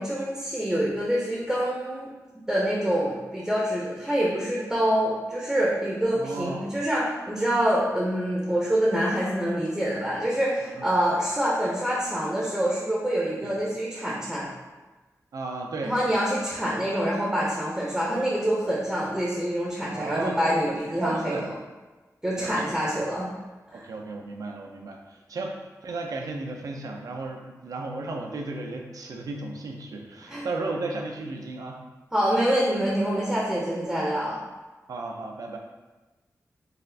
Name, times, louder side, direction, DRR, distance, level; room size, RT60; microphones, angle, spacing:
voice 1, 0.0-2.1 2.5-14.5 15.8-21.4 22.2-23.3 23.7-23.9 30.3-30.5 32.1-34.4, equal, 5° right, -5 dB, 0.5 m, -26 dB
voice 2, 6.1-6.7 10.6-10.9 13.4-13.6 15.3-16.0 19.9-20.4 20.6-20.7 21.0-21.5 22.4-23.0 23.7-31.8 34.9-35.6, right 3 dB, 75° right, 2 dB, 0.4 m, -34 dB
3.9 x 2.4 x 2.6 m, 1.2 s
wide cardioid pair, 140°, 6 cm